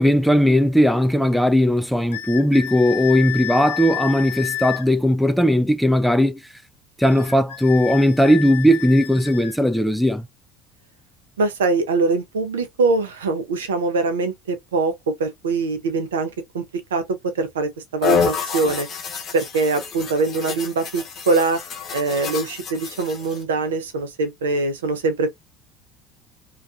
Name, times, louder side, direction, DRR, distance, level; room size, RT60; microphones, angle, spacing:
voice 1, 0.0-6.4 7.0-10.3, equal, ahead, 0.3 m, -18 dB
sound 1, 2.1-4.9 7.0-9.6, left 13 dB, 75° left, 0.4 m, -30 dB
voice 2, 11.4-16.6 16.9-18.9 19.3-21.6 21.9-25.4, right 3 dB, 80° right, 0.5 m, -23 dB
sound 2, 18.0-23.4, left 5 dB, 45° left, 0.7 m, -27 dB
2.3 x 2.3 x 2.4 m
figure-of-eight pair, 65°, 0 cm